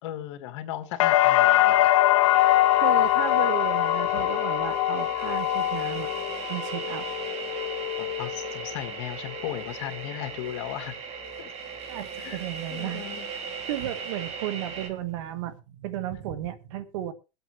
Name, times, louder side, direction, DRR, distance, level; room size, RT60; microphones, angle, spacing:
voice 1, 0.0-2.0 8.0-10.9 11.4-11.5 12.2-13.3, left 12 dB, 70° left, 2.2 m, -36 dB
sound 1, 1.0-8.9 9.3-9.9, left 15 dB, 85° left, 0.7 m, -23 dB
sound 2, 2.2-14.9, right 5 dB, 40° right, 2.4 m, -38 dB
voice 2, 2.8-6.1 6.5-7.1 11.9-13.4 13.7-17.1, right 12 dB, 75° right, 1.6 m, -34 dB
22.5 x 7.9 x 3.2 m
supercardioid pair, 130°, 16 cm